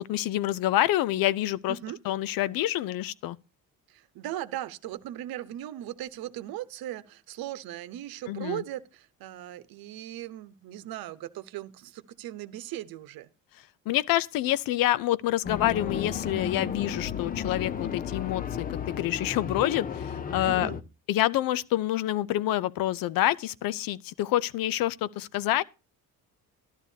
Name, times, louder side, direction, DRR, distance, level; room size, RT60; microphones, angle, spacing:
voice 1, 0.0-1.8 2.0-3.4 8.3-8.6 13.9-20.7 21.1-25.6, left 14 dB, 75° left, 0.6 m, -27 dB
voice 2, 1.7-2.0 3.9-13.3 20.4-20.8, right 13 dB, 85° right, 0.9 m, -38 dB
sound 1, 15.4-20.8, left 7 dB, 25° left, 0.5 m, -33 dB
13.0 x 13.0 x 2.7 m
cardioid pair, 165°, 35 cm